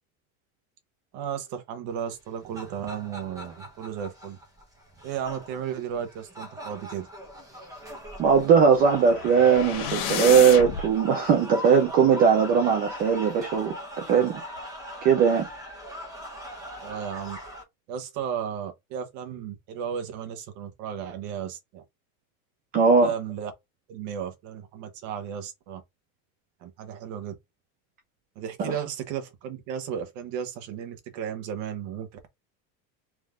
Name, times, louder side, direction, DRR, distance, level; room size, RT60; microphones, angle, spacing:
voice 1, 1.1-4.4 5.0-7.1 16.8-17.4 17.9-21.8 23.0-23.5 23.9-25.8 26.6-27.3 28.3-32.3, right 8 dB, 45° right, 1.2 m, -34 dB
sound 1, 2.2-17.6, equal, 10° right, 0.9 m, -41 dB
voice 2, 8.2-14.4 15.0-15.5 22.7-23.1 28.6-28.7, right 6 dB, 25° right, 0.3 m, -20 dB
sound 2, 8.7-10.9, left 9 dB, 80° left, 1.4 m, -31 dB
3.6 x 3.0 x 3.6 m
supercardioid pair, 170°, 42 cm